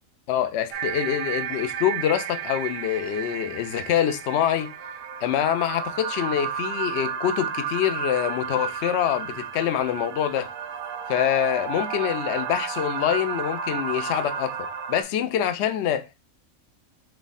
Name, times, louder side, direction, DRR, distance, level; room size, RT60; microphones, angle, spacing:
voice 1, 0.3-4.7 5.2-10.5 11.1-14.6 14.9-16.1, left 10 dB, 60° left, 0.8 m, -25 dB
sound 1, 0.7-15.0, right 8 dB, 90° right, 1.1 m, -32 dB
3.5 x 3.4 x 3.9 m
omnidirectional pair, 1.5 m